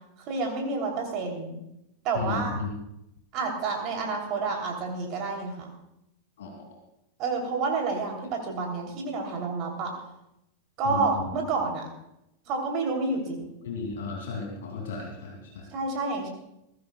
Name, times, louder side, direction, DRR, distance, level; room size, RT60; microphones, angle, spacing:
voice 1, 0.2-1.6 2.0-2.6 3.3-5.7 7.2-9.9 10.8-11.8 12.5-13.5 15.7-16.3, right 4 dB, 40° right, 1 dB, 3.2 m, -29 dB
voice 2, 2.1-2.7 6.4-6.7 10.8-11.3 13.6-15.6, left 4 dB, 60° left, 0 dB, 2.7 m, -34 dB
21.0 x 16.0 x 2.3 m, 0.84 s
figure-of-eight pair, 90°, 0 cm